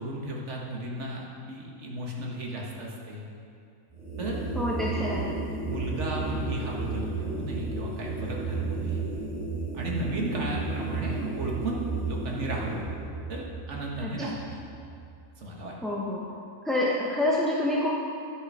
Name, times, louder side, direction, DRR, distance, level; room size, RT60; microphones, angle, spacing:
voice 1, 0.0-3.2 4.2-4.4 4.9-5.0 5.6-9.0 9.7-12.9 13.3-14.6 15.4-15.7, right 1 dB, 50° right, -2 dB, 1.7 m, -34 dB
sound 1, 3.9-15.2, right 3 dB, 20° right, 1.6 m, -33 dB
voice 2, 4.5-5.4 14.0-14.4 15.8-16.2 16.6-17.9, left 1 dB, ahead, -5 dB, 0.5 m, -27 dB
10.5 x 6.3 x 5.5 m, 2.4 s
omnidirectional pair, 1.6 m